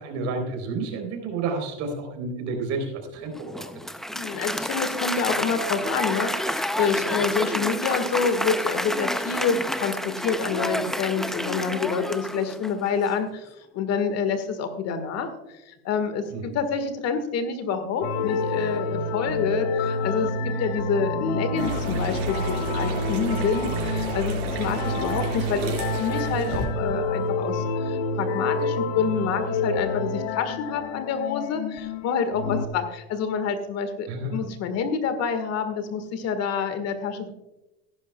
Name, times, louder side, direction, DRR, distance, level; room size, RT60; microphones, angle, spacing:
voice 1, 0.0-3.7 16.3-16.5 34.1-34.4, right 3 dB, 60° right, 4 dB, 3.8 m, -30 dB
Applause, 3.3-12.9, equal, ahead, 0.5 m, -29 dB
voice 2, 4.1-37.3, left 5 dB, 50° left, 9 dB, 1.7 m, -28 dB
sound 1, 18.0-32.7, left 3 dB, 80° left, 1.2 m, -28 dB
sound 2, 21.6-26.7, right 4 dB, 80° right, 4.3 m, -32 dB
16.0 x 11.5 x 2.3 m, 0.98 s
supercardioid pair, 105°, 32 cm